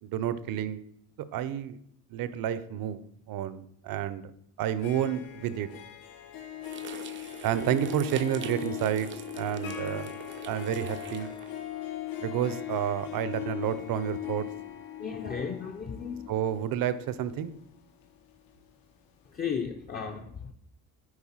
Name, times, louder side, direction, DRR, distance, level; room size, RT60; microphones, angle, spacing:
voice 1, 0.0-0.8 1.3-1.8 2.1-3.0 3.3-4.3 4.6-5.7 7.4-9.1 9.3-10.2 10.5-11.3 12.2-14.5 16.3-17.5, right 10 dB, 70° right, 14 dB, 0.8 m, -30 dB
Harp, 4.6-18.6, left 12 dB, 85° left, 1.3 m, -40 dB
sound 1, 6.6-11.6, right 9 dB, 35° right, 0.4 m, -45 dB
voice 2, 15.0-16.2 19.3-20.5, left 6 dB, 25° left, 4 dB, 0.6 m, -35 dB
9.8 x 4.3 x 5.7 m, 0.70 s
cardioid pair, 155°, 34 cm